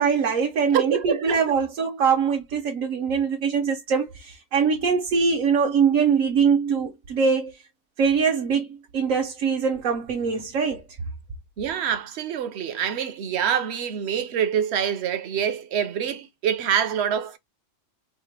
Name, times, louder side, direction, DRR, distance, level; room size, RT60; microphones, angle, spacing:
voice 1, 0.0-7.5 8.0-8.7 8.9-10.8, right 6 dB, 85° right, 1.2 m, -22 dB
voice 2, 0.7-1.4 11.6-17.4, right 8 dB, 60° right, 0.9 m, -26 dB
4.1 x 2.1 x 3.2 m
omnidirectional pair, 1.3 m